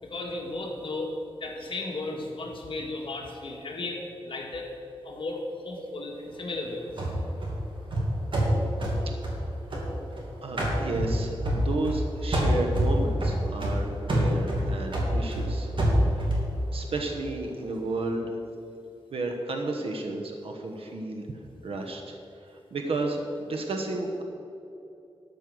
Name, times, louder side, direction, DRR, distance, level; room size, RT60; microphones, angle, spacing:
voice 1, 0.0-4.7 5.0-7.1, left 2 dB, 65° left, 0 dB, 1.9 m, -35 dB
sound 1, 7.0-10.2 10.6-12.0 12.3-16.5, equal, 60° right, 2.6 m, -26 dB
voice 2, 10.4-15.7 16.1-16.3 16.7-18.4 19.1-21.3 21.6-22.2 22.4-24.2, right 2 dB, 80° right, 3 dB, 1.0 m, -32 dB
13.0 x 5.5 x 7.7 m, 2.7 s
wide cardioid pair, 120°, 10 cm